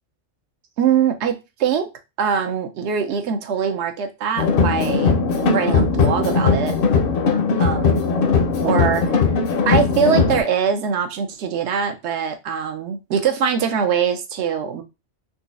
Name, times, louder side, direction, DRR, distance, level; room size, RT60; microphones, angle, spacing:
voice 1, 0.8-1.9 2.2-5.2 5.5-6.8 7.6-8.0 8.6-9.1 9.7-14.8, right 7 dB, 70° right, 7 dB, 0.8 m, -22 dB
sound 1, 4.4-10.4, left 5 dB, 60° left, 0.7 m, -19 dB
3.9 x 2.3 x 2.5 m, 0.26 s
omnidirectional pair, 1.2 m